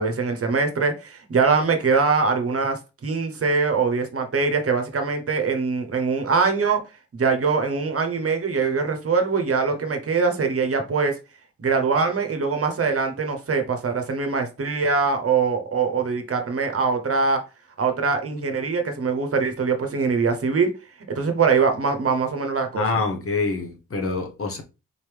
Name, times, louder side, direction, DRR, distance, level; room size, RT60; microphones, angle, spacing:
voice 1, 0.0-6.8 7.1-11.1 11.6-17.4 17.8-20.7 21.1-22.8, right 4 dB, 50° right, 1.0 m, -23 dB
voice 2, 22.7-24.6, left 3 dB, 45° left, 1.2 m, -26 dB
4.1 x 3.0 x 3.4 m
cardioid pair, 55°, 30 cm